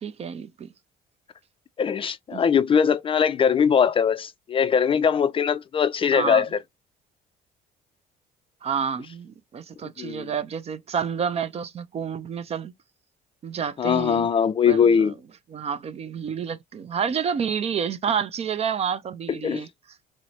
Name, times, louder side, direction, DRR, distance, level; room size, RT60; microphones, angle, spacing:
voice 1, 0.0-0.7 2.3-2.4 6.1-6.5 8.6-12.7 13.4-14.3 14.7-15.1 15.5-19.7, right 7 dB, 40° right, 0.4 m, -29 dB
voice 2, 1.8-6.5 10.0-10.3 13.8-15.1 19.4-19.7, left 7 dB, 30° left, 0.4 m, -21 dB
4.5 x 2.0 x 2.7 m
cardioid pair, 110°, 17 cm